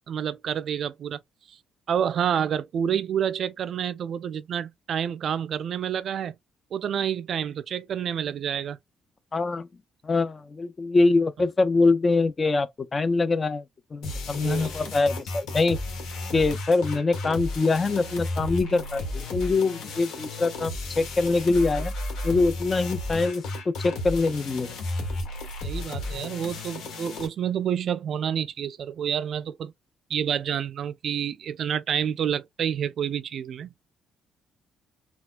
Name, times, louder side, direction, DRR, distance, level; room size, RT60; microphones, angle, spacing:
voice 1, 0.1-1.2 1.9-6.3 6.7-8.8 14.4-14.9 25.6-29.7 30.1-33.7, right 8 dB, 55° right, 0.3 m, -28 dB
voice 2, 9.3-9.7 10.0-13.6 13.9-15.8 16.3-21.9 22.2-24.7, left 3 dB, 25° left, 0.3 m, -24 dB
sound 1, 14.0-27.3, left 2 dB, 80° left, 1.3 m, -33 dB
4.2 x 2.3 x 2.2 m
cardioid pair, 135°, 0 cm